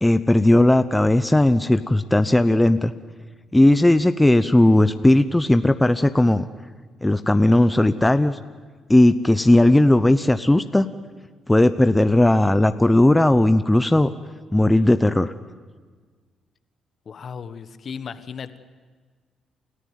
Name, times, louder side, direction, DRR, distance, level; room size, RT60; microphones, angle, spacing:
voice 1, 0.0-2.9 3.5-6.4 7.0-8.4 8.9-10.9 11.5-14.1 14.5-15.3, left 1 dB, 10° left, 10 dB, 0.8 m, -17 dB
voice 2, 17.0-18.6, left 6 dB, 50° left, 11 dB, 1.4 m, -35 dB
29.0 x 14.5 x 9.4 m, 1.5 s
cardioid pair, 90°, 0 cm